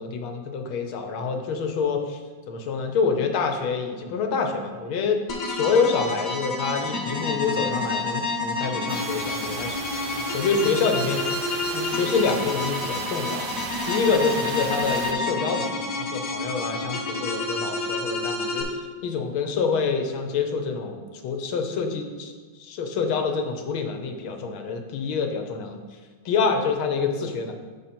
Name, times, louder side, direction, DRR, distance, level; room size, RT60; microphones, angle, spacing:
voice 1, 0.0-2.2 2.5-11.3 11.6-13.5 13.8-18.7 19.0-22.3 22.6-25.8 26.2-27.5, left 5 dB, 85° left, 5 dB, 1.6 m, -27 dB
sound 1, 5.3-18.6, left 3 dB, 50° left, 1.2 m, -29 dB
sound 2, 8.9-15.1, right 6 dB, 70° right, 1.1 m, -36 dB
7.6 x 5.1 x 4.3 m, 1.4 s
omnidirectional pair, 2.2 m